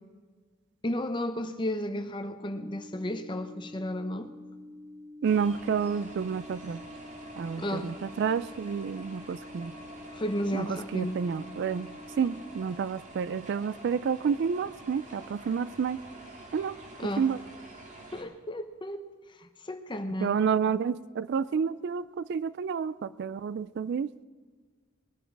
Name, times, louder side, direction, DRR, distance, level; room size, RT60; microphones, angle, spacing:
voice 1, 0.8-4.3 7.6-7.9 10.1-11.2 17.0-17.3 18.1-19.0 19.4-20.4, left 1 dB, 20° left, 8 dB, 0.8 m, -33 dB
sound 1, 2.4-12.4, left 2 dB, ahead, 3.7 m, -48 dB
sound 2, 5.2-18.2, right 2 dB, 35° right, 1.9 m, -47 dB
voice 2, 5.2-6.8 7.4-9.7 10.5-11.9 12.2-16.0 16.5-16.8 17.2-17.4 20.2-24.1, right 6 dB, 50° right, 17 dB, 0.3 m, -29 dB
21.0 x 9.9 x 4.7 m, 1.5 s
head